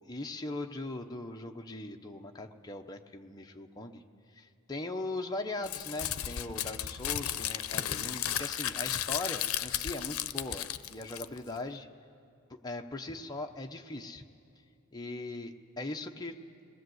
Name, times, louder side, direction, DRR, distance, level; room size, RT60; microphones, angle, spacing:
voice 1, 0.1-4.0 4.3-11.9 12.5-14.2 14.9-16.4, left 2 dB, 20° left, 3 dB, 0.9 m, -40 dB
Crumpling crinkling, 5.6-11.6, left 11 dB, 80° left, 0.6 m, -34 dB
20.0 x 19.0 x 7.9 m, 2.6 s
head